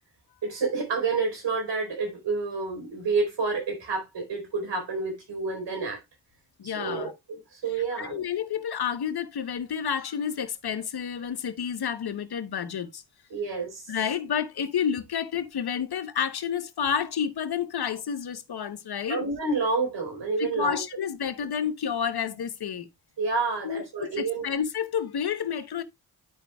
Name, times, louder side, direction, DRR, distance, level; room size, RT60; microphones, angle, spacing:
voice 1, 0.4-6.0 6.6-8.3 13.3-13.9 19.1-20.8 23.2-24.5, right 4 dB, 75° right, 4.2 m, -29 dB
voice 2, 6.6-7.1 8.0-13.0 13.9-19.2 20.4-22.9 23.6-25.8, left 7 dB, 60° left, 1.1 m, -30 dB
13.0 x 5.1 x 2.3 m
cardioid pair, 70°, 44 cm